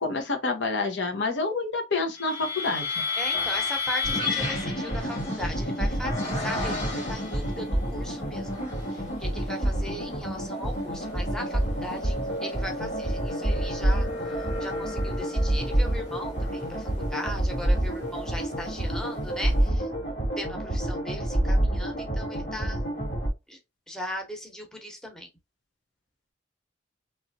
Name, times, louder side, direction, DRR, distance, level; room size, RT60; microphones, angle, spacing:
voice 1, 0.0-3.1, left 3 dB, 85° left, 0.9 m, -28 dB
sound 1, 2.1-7.6 8.2-9.0 9.5-18.7, left 3 dB, 40° left, 1.4 m, -34 dB
voice 2, 3.2-8.5 8.9-19.9 20.4-22.8 23.5-23.6 23.9-25.3, left 1 dB, 5° left, 0.8 m, -38 dB
sound 2, 4.0-23.3, right 1 dB, 65° left, 1.8 m, -28 dB
3.2 x 2.9 x 2.7 m
head